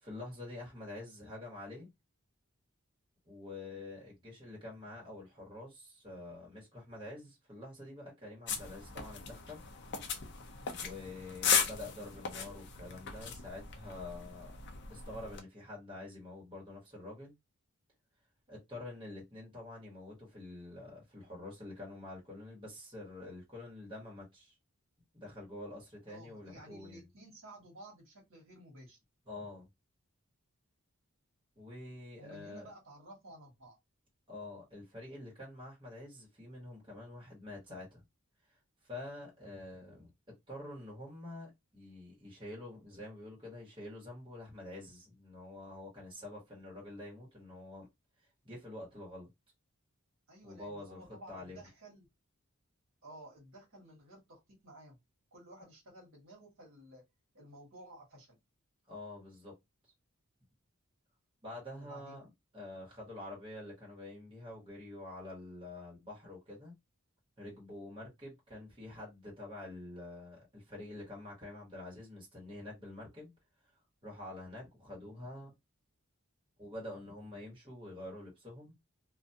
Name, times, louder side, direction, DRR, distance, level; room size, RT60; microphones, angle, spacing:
voice 1, 0.0-1.9 3.2-9.6 10.7-14.6 14.9-17.3 18.5-24.6 25.1-27.0 29.3-29.7 31.6-32.7 34.3-38.0 38.8-40.1 40.5-47.9 48.4-49.3 50.4-51.6 58.9-59.6 61.4-62.2 62.5-66.7 67.4-73.3 74.0-75.5 76.6-78.7, left 2 dB, 20° right, 1.2 m, -47 dB
sound 1, 8.5-15.4, left 6 dB, 50° left, 0.5 m, -37 dB
voice 2, 26.1-29.0 32.2-33.8 50.3-52.1 53.0-55.0 55.3-57.0 57.3-58.4 61.8-62.2, right 1 dB, 65° right, 1.2 m, -54 dB
2.4 x 2.2 x 2.6 m
head